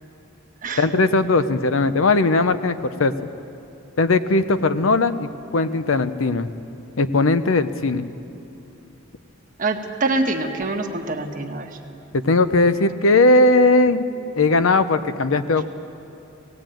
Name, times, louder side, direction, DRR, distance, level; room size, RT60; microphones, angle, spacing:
voice 1, 0.8-3.3 4.0-6.5 7.0-8.1 12.1-14.1 14.4-15.7, left 2 dB, 70° left, 12 dB, 0.7 m, -18 dB
voice 2, 9.6-11.8, right 2 dB, 40° right, 2 dB, 1.4 m, -25 dB
18.0 x 16.0 x 9.1 m, 2.8 s
head